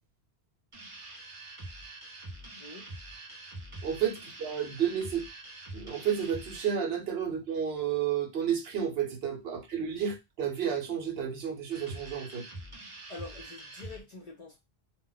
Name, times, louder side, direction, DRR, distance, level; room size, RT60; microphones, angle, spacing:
sound 1, 0.7-6.8 11.7-14.0, right 2 dB, 35° right, 0.6 m, -45 dB
voice 1, 2.6-2.9 13.1-14.6, left 3 dB, 50° left, 0.5 m, -45 dB
voice 2, 3.8-5.3 5.7-12.4, right 8 dB, 65° right, 0.9 m, -31 dB
2.2 x 2.1 x 3.8 m
omnidirectional pair, 1.1 m